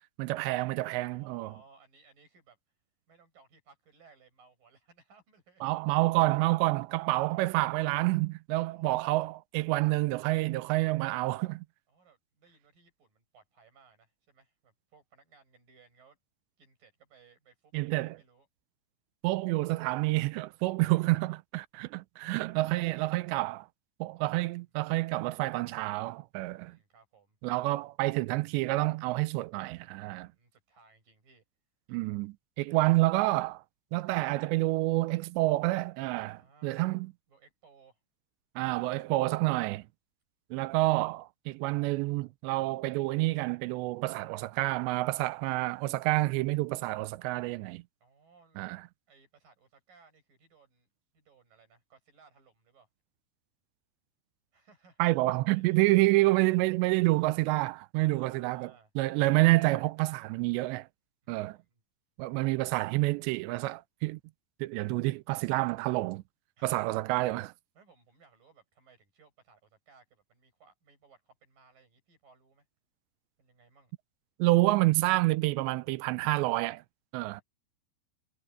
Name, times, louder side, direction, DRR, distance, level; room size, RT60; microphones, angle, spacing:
voice 1, 0.2-1.5 5.6-11.7 17.7-18.2 19.2-23.7 24.0-26.8 27.4-30.3 31.9-33.6 33.9-37.1 38.6-39.9 40.5-47.8 48.6-48.8 55.0-60.9 61.3-61.6 62.2-64.2 64.6-66.2 66.6-67.5 74.4-76.8 77.1-77.4, right 20 dB, 85° right, 2.6 m, -28 dB
voice 2, 1.0-2.6 3.1-5.6 7.1-7.2 11.9-16.2 16.6-18.5 20.8-21.2 22.6-23.1 24.5-24.7 26.5-27.4 30.3-31.4 36.3-36.9 37.3-38.0 48.0-48.7 49.1-50.9 51.1-52.9 54.5-55.2 55.5-56.3 58.0-58.9 61.2-61.8 66.6-66.7 67.7-72.7 73.4-73.9 77.2-77.4, right 5 dB, 45° right, 9.4 m, -62 dB
omnidirectional pair, 5.5 m